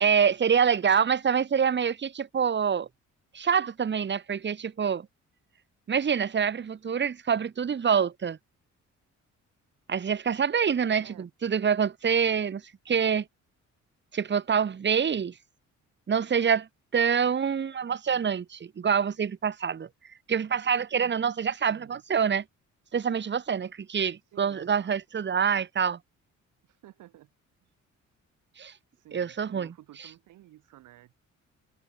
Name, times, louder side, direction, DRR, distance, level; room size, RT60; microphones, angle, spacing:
voice 1, 0.0-2.9 3.3-5.1 5.9-8.4 9.9-13.2 14.1-15.3 16.1-16.7 16.9-19.9 20.3-22.4 22.9-26.0 28.6-28.7 29.1-29.7, right 7 dB, 35° right, 1.4 m, -26 dB
voice 2, 21.7-22.0 24.2-25.0 26.6-27.3 27.6-27.8 28.9-31.1, right 14 dB, 85° right, 7.1 m, -53 dB
cardioid pair, 90°, 30 cm